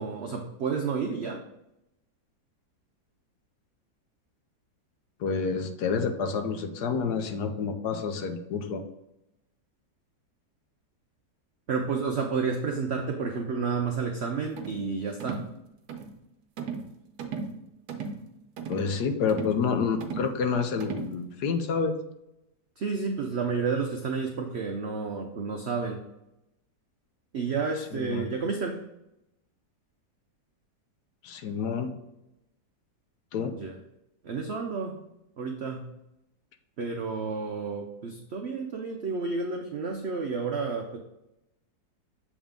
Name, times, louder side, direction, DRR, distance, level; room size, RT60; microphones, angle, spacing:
voice 1, 0.0-1.4 11.7-15.5 22.8-26.0 27.3-28.8 33.5-33.8 34.2-35.0 35.4-35.9 36.8-41.0, right 5 dB, 85° right, 3 dB, 0.5 m, -31 dB
voice 2, 5.2-8.8 18.7-22.0 27.9-28.3 31.2-31.9 33.3-33.5, left 5 dB, 70° left, 7 dB, 1.2 m, -28 dB
sound 1, 14.6-14.8 15.2-15.5 15.9-16.1 16.6-16.9 17.2-17.5 17.9-18.2 18.6-18.9 19.3-19.6 20.0-20.3 20.8-21.1, right 5 dB, 70° right, 1.3 m, -36 dB
7.2 x 3.6 x 3.6 m, 0.87 s
omnidirectional pair, 1.9 m